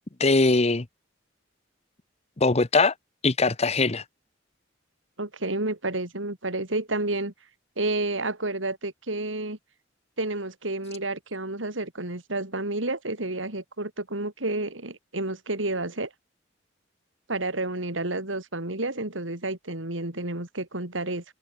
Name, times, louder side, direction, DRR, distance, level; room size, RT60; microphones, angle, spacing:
voice 1, 0.2-0.9 2.4-2.9 3.2-4.0, left 3 dB, 35° left, 1.1 m, -21 dB
voice 2, 5.2-7.3 7.8-9.6 10.2-16.1 17.3-21.2, right 2 dB, 90° right, 4.1 m, -30 dB
open air
head